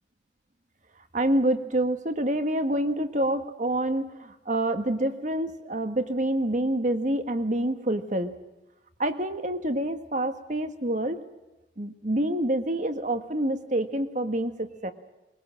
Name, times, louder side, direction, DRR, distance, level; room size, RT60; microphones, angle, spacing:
voice 1, 1.1-8.3 9.0-11.2 11.8-14.9, right 1 dB, 45° right, 8 dB, 1.6 m, -27 dB
22.0 x 21.5 x 7.6 m, 1.0 s
head